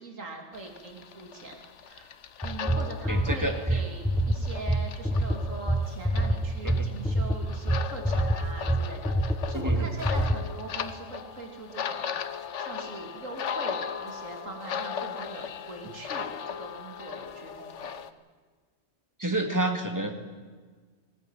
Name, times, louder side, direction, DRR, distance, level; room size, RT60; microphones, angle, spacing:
voice 1, 0.0-2.1 2.4-18.0, right 2 dB, 80° right, 2 dB, 3.2 m, -42 dB
sound 1, 0.5-18.1, left 8 dB, 70° left, 1.2 m, -38 dB
sound 2, 2.4-10.4, right 1 dB, ahead, 0.6 m, -26 dB
voice 2, 3.1-3.8 6.6-6.9 9.5-9.9 19.2-20.1, right 1 dB, 15° right, 4 dB, 2.2 m, -29 dB
19.0 x 19.0 x 9.0 m, 1.5 s
omnidirectional pair, 1.3 m